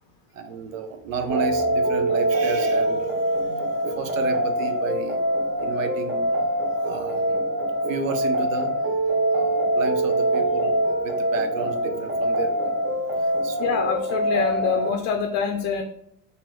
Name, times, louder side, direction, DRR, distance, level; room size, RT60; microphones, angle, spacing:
voice 1, 0.3-5.2 5.6-6.2 6.8-7.4 7.9-8.7 9.3-10.8 11.0-12.8 13.2-13.9, right 5 dB, 90° right, 6 dB, 0.7 m, -32 dB
sound 1, 1.3-14.9, right 1 dB, 30° right, 0.7 m, -24 dB
voice 2, 13.6-15.8, left 6 dB, 45° left, 4 dB, 0.5 m, -25 dB
2.9 x 2.6 x 3.9 m, 0.77 s
supercardioid pair, 100°, 38 cm